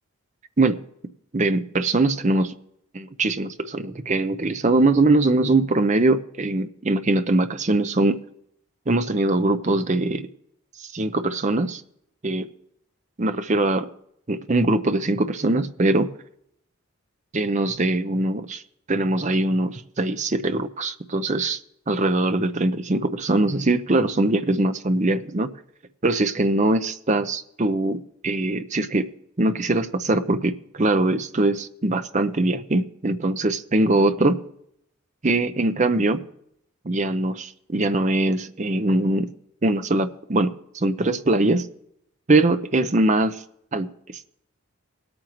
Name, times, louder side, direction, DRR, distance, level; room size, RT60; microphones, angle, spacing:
voice 1, 1.3-2.5 2.9-8.2 8.9-10.3 10.9-11.8 12.2-12.5 13.2-13.9 14.3-16.1 17.3-18.6 18.9-21.6 21.9-25.5 26.0-29.1 29.4-34.4 35.2-36.2 36.8-39.3 39.6-41.7 42.3-43.4 43.7-44.3, right 2 dB, 35° right, 10 dB, 0.7 m, -22 dB
20.0 x 8.8 x 3.1 m, 0.74 s
head